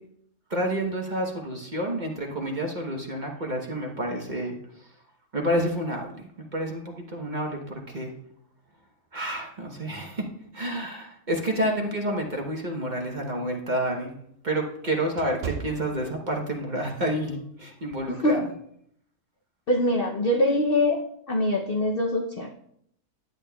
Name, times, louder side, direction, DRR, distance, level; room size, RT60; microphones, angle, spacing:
voice 1, 0.5-4.5 5.3-8.1 9.1-10.2 10.5-14.1 14.4-18.5, right 1 dB, 35° right, 0 dB, 0.9 m, -29 dB
sound 1, 12.9-16.6 17.1-17.3 17.9-18.2, right 7 dB, 65° right, 0.6 m, -39 dB
voice 2, 18.1-18.5 19.7-22.5, left 1 dB, 55° left, 2 dB, 0.6 m, -24 dB
10.5 x 8.8 x 2.2 m, 0.69 s
omnidirectional pair, 1.6 m